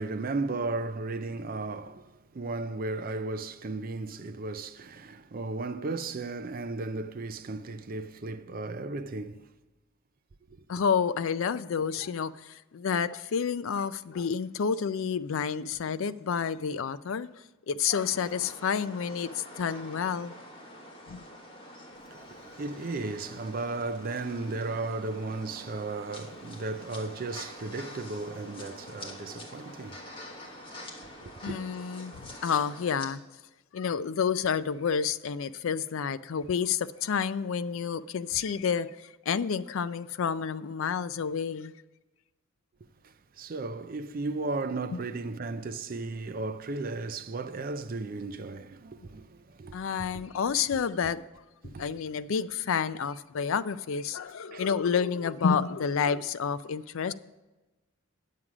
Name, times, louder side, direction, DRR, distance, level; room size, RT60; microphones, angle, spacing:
voice 1, 0.0-9.4 22.1-30.0 31.2-31.6 43.0-49.8 50.1-50.2 51.6-51.8 54.5-54.6, right 3 dB, 40° right, 0.4 m, -35 dB
voice 2, 10.7-17.3 17.7-20.3 21.1-21.2 31.4-33.2 33.7-41.7 49.7-51.2 51.6-57.1, left 6 dB, 60° left, 0.4 m, -29 dB
sound 1, 17.9-33.1, left 1 dB, 25° left, 1.3 m, -46 dB
9.7 x 7.5 x 4.9 m
head